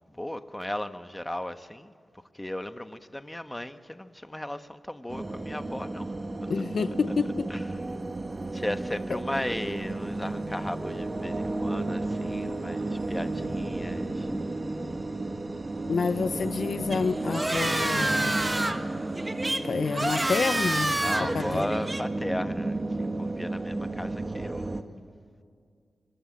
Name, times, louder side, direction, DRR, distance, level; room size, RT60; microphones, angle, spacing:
voice 1, 0.1-1.9 2.3-6.1 7.5-7.6 8.5-14.3 21.0-24.7, left 1 dB, 10° left, 1.3 m, -36 dB
sound 1, 5.1-24.8, right 2 dB, 40° right, 1.8 m, -33 dB
voice 2, 6.5-7.5 15.9-18.3 19.6-21.6, left 5 dB, 70° left, 0.7 m, -29 dB
sound 2, 16.9-22.0, right 1 dB, 20° right, 1.7 m, -29 dB
25.5 x 22.0 x 8.7 m
cardioid pair, 60°, 0 cm